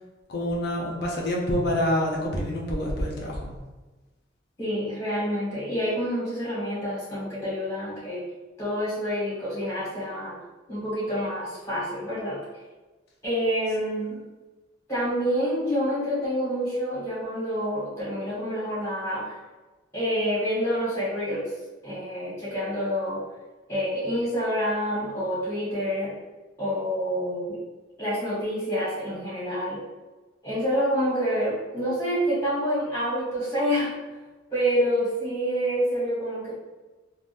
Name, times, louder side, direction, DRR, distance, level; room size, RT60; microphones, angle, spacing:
voice 1, 0.3-3.5, equal, 60° left, -2 dB, 0.7 m, -27 dB
voice 2, 4.6-8.2 8.6-10.4 10.7-12.4 13.2-14.2 14.9-19.4 19.9-21.5 21.8-23.2 23.7-26.1 26.6-27.6 28.0-29.8 30.4-33.9 34.5-36.5, equal, 15° left, -9 dB, 1.4 m, -27 dB
3.5 x 2.4 x 2.6 m, 1.2 s
head